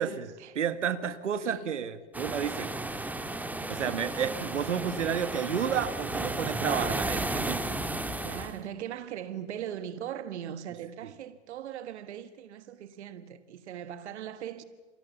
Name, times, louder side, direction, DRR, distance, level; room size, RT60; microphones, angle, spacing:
voice 1, 0.0-0.5 1.4-1.7 8.2-14.6, right 10 dB, 70° right, 1.6 m, -40 dB
voice 2, 0.6-2.7 3.7-7.6, right 8 dB, 85° right, 1.7 m, -31 dB
sound 1, 2.1-8.6, right 2 dB, 5° right, 1.7 m, -33 dB
29.0 x 23.5 x 7.1 m
hypercardioid pair, 120°, 36 cm